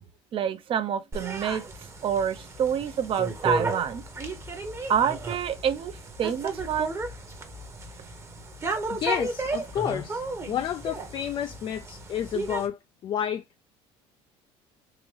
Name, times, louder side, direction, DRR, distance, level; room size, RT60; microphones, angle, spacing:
voice 1, 0.3-1.6 2.0-4.0 4.9-5.9 6.2-6.9, right 8 dB, 45° right, 0.7 m, -27 dB
sound 1, 1.1-12.7, right 3 dB, 20° right, 0.9 m, -34 dB
voice 2, 8.9-13.4, left 9 dB, 40° left, 0.3 m, -30 dB
3.8 x 2.5 x 3.2 m
supercardioid pair, 105°, 13 cm